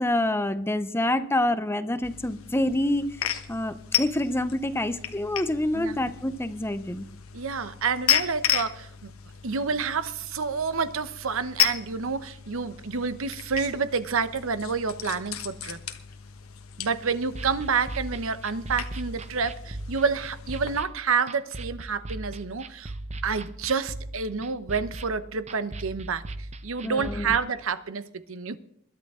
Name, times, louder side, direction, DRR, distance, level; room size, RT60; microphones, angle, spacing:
voice 1, 0.0-7.1 26.8-27.4, left 1 dB, 10° left, 12 dB, 0.7 m, -27 dB
sound 1, 2.0-20.8, left 10 dB, 70° left, 1.2 m, -34 dB
voice 2, 7.3-9.1 9.4-15.8 16.8-22.9 23.2-28.6, right 5 dB, 65° right, 13 dB, 0.8 m, -29 dB
sound 2, 17.3-27.4, right 2 dB, 30° right, 0.7 m, -39 dB
21.5 x 11.5 x 3.7 m, 0.70 s
head